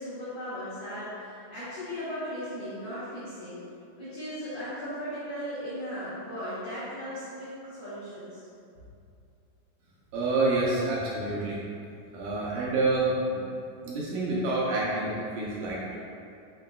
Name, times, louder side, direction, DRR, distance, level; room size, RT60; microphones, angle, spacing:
voice 1, 0.0-3.6 4.0-8.4, equal, 70° left, -12 dB, 1.5 m, -37 dB
voice 2, 10.1-11.6 12.1-13.5 13.8-16.0, right 2 dB, 75° right, -6 dB, 2.0 m, -28 dB
5.6 x 3.7 x 2.2 m, 2.5 s
omnidirectional pair, 3.9 m